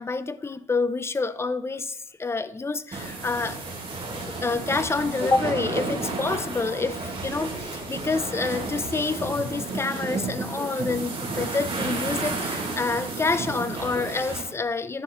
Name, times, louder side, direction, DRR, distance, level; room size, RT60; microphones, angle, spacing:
voice 1, 0.0-3.6 4.2-15.0, left 3 dB, 15° left, 0.4 m, -28 dB
sound 1, 2.9-14.4, right 3 dB, 35° right, 2.4 m, -32 dB
10.5 x 5.6 x 3.0 m
cardioid pair, 110°, 17 cm